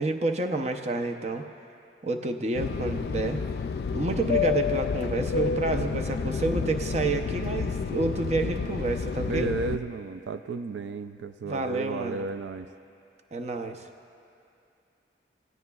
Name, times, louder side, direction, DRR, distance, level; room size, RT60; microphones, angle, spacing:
voice 1, 0.0-1.5 2.0-3.4 3.9-9.5 11.4-12.3 13.3-13.8, right 2 dB, 40° right, 5 dB, 0.7 m, -29 dB
Fixed-wing aircraft airplane, 2.5-9.8, left 5 dB, 60° left, 0.3 m, -30 dB
voice 2, 9.2-12.7, right 4 dB, 90° right, 11 dB, 0.4 m, -33 dB
27.0 x 15.0 x 2.3 m, 2.5 s
head